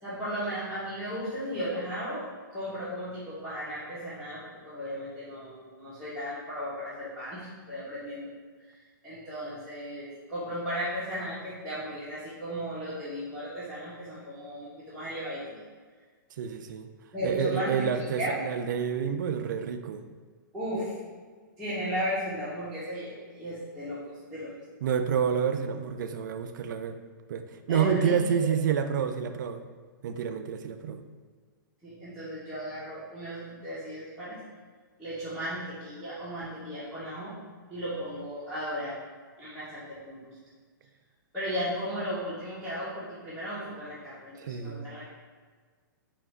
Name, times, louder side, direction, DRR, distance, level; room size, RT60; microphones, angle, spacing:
voice 1, 0.0-2.2 2.5-8.3 9.0-15.6 17.1-17.9 18.2-18.4 20.5-21.0 21.6-24.5 27.7-28.5 31.8-34.4 35.0-37.3 37.7-39.0 39.4-40.4 41.3-45.0, equal, ahead, -14 dB, 1.1 m, -35 dB
voice 2, 16.4-16.9 17.2-20.1 24.8-27.0 27.3-29.6 30.0-31.0 44.3-44.9, right 7 dB, 60° right, 8 dB, 0.4 m, -29 dB
4.5 x 2.6 x 3.3 m, 1.5 s
hypercardioid pair, 145°, 11 cm